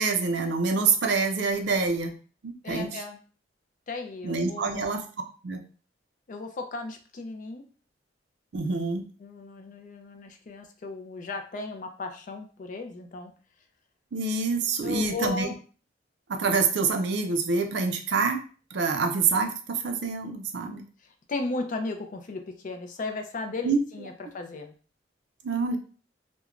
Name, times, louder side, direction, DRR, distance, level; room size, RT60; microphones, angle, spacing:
voice 1, 0.0-2.1 2.4-3.0 4.2-5.0 5.4-5.6 8.5-9.1 14.1-15.5 16.3-18.4 18.7-20.9 23.6-23.8 25.4-25.8, right 4 dB, 65° right, 6 dB, 0.4 m, -26 dB
voice 2, 2.6-3.2 3.9-4.9 6.3-7.6 9.2-13.3 14.8-15.6 21.0-24.7, left 3 dB, 45° left, 5 dB, 0.4 m, -36 dB
3.0 x 2.1 x 2.4 m, 0.38 s
head